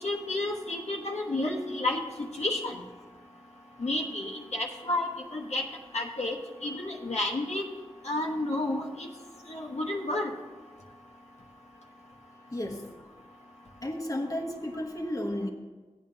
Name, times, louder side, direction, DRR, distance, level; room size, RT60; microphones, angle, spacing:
voice 1, 0.0-2.8 3.8-5.6 5.9-6.3 6.6-7.6 8.0-9.1 9.5-10.3, left 2 dB, 85° left, -2 dB, 1.1 m, -31 dB
voice 2, 12.5-12.9 13.8-15.5, left 1 dB, 30° left, 2 dB, 1.1 m, -33 dB
15.0 x 9.1 x 2.8 m, 1.3 s
wide cardioid pair, 55°, 11 cm